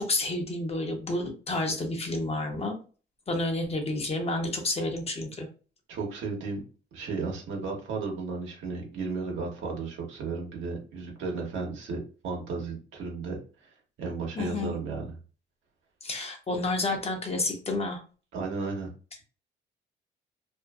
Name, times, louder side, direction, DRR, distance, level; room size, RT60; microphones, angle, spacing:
voice 1, 0.0-2.8 3.3-5.5 14.4-14.8 16.0-18.0, left 2 dB, 30° left, 4 dB, 0.7 m, -30 dB
voice 2, 5.9-6.6 6.9-13.4 14.0-15.1 18.3-18.9, right 4 dB, 75° right, 0 dB, 1.0 m, -34 dB
2.6 x 2.5 x 2.3 m, 0.37 s
cardioid pair, 90°, 20 cm